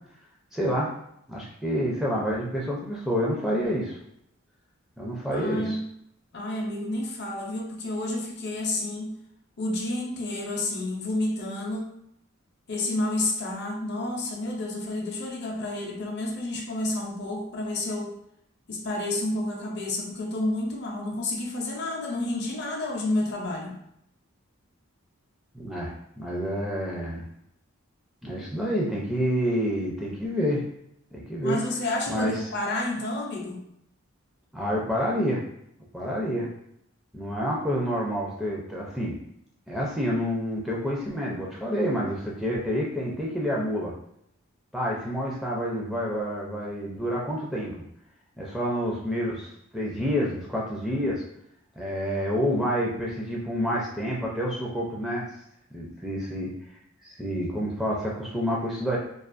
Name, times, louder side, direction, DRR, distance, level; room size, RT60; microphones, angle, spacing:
voice 1, 0.5-0.9 1.3-4.0 5.0-5.8 25.5-27.2 28.2-30.6 31.1-31.6 32.1-32.4 34.5-35.4 35.9-36.5 37.1-39.2 39.7-43.9 44.7-47.8 48.4-51.2 51.8-55.3 55.7-56.5 57.0-59.0, equal, ahead, -5 dB, 0.4 m, -28 dB
voice 2, 5.3-5.9 6.3-9.2 9.6-11.9 12.7-18.2 18.7-23.7 31.4-33.6, left 2 dB, 50° left, 0 dB, 0.5 m, -30 dB
2.4 x 2.3 x 2.5 m, 0.75 s
head